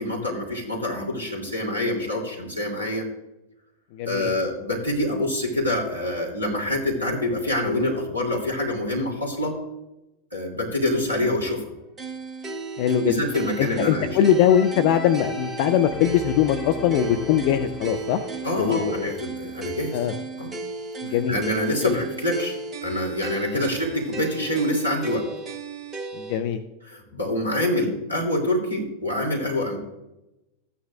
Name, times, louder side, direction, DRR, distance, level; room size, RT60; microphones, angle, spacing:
voice 1, 0.0-3.1 4.1-9.6 10.3-11.6 13.0-14.2 18.4-20.1 20.4-20.6 21.1-25.3 26.8-29.8, left 1 dB, 90° left, -2 dB, 2.6 m, -26 dB
voice 2, 3.9-4.3 12.8-13.1 13.6-18.2 18.6-19.1 19.9-20.1 21.0-21.4 21.8-22.0 23.5-23.6 26.1-26.6, left 10 dB, 45° left, 9 dB, 0.6 m, -21 dB
sound 1, 12.0-26.4, right 4 dB, 20° right, 1.1 m, -35 dB
sound 2, 14.2-20.2 20.7-20.8, left 3 dB, 15° left, 2.1 m, -37 dB
14.0 x 9.5 x 2.4 m, 0.96 s
figure-of-eight pair, 90°, 0 cm